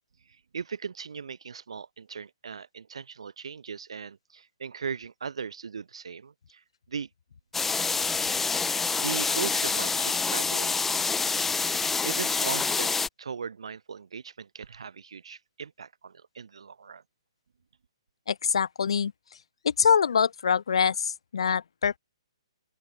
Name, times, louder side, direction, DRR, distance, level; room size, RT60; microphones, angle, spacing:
voice 1, 0.3-7.1 8.9-10.8 12.0-17.0, right 6 dB, 75° right, 4.3 m, -38 dB
sound 1, 7.5-13.1, left 4 dB, 10° left, 1.0 m, -27 dB
voice 2, 18.3-19.1 19.6-22.0, left 7 dB, 70° left, 0.4 m, -24 dB
open air
hypercardioid pair, 140°, 3 cm